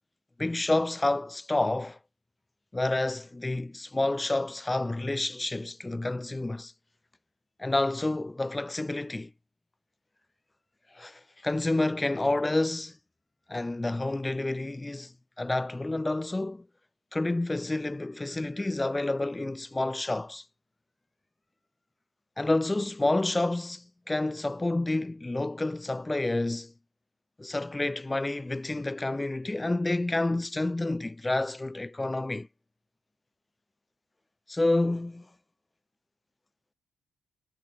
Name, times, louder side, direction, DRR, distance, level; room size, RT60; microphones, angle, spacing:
voice 1, 0.4-2.0 2.7-6.7 7.6-9.3 10.9-13.0 13.5-16.7 17.1-20.4 22.4-26.7 27.4-32.5 34.5-35.3, left 2 dB, 15° left, 1.8 m, -29 dB
cardioid pair, 90°, 0 cm